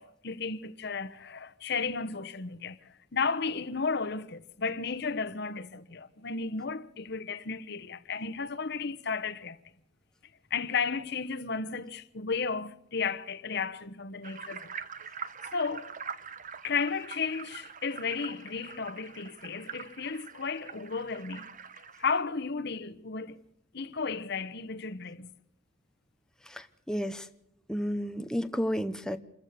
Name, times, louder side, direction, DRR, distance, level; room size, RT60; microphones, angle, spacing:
voice 1, 0.0-2.8 3.1-9.6 10.5-14.7 15.5-15.9 16.6-21.5 22.0-23.4 23.7-25.3, left 5 dB, 60° left, 1.2 m, -33 dB
sound 1, 14.2-22.2, right 6 dB, 45° right, 1.1 m, -44 dB
voice 2, 26.5-27.3 27.7-29.2, equal, 5° left, 0.9 m, -32 dB
27.5 x 15.0 x 6.8 m
head